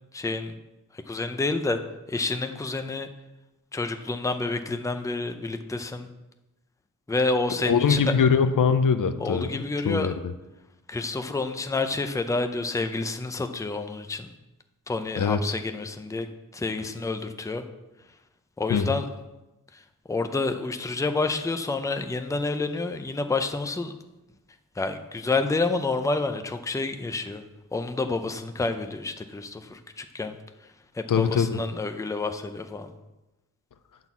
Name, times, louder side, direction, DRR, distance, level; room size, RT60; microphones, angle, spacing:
voice 1, 0.1-0.5 1.1-1.8 2.1-3.1 3.7-6.1 7.1-8.1 9.2-10.1 10.9-14.3 14.9-16.3 16.5-17.6 18.6-19.1 20.1-23.9 24.8-27.4 27.7-30.3 30.9-32.9, left 3 dB, 10° left, 7 dB, 0.6 m, -29 dB
voice 2, 7.6-10.1 15.2-15.5 18.7-18.9 31.1-31.6, left 6 dB, 60° left, 9 dB, 0.6 m, -23 dB
9.0 x 4.0 x 7.2 m, 1.0 s
wide cardioid pair, 105°, 36 cm